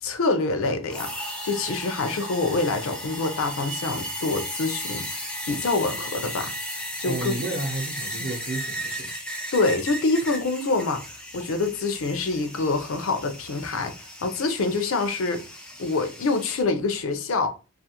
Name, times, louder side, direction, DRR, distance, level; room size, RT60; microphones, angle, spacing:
voice 1, 0.0-5.1 5.5-6.5 7.0-7.3 9.5-11.0 11.3-13.9 14.2-15.5 15.8-17.5, left 3 dB, 60° left, 0.4 m, -26 dB
sound 1, 0.9-16.6, equal, 5° left, 0.4 m, -35 dB
voice 2, 7.0-9.1, right 2 dB, 55° right, 0.6 m, -31 dB
2.4 x 2.3 x 2.8 m
head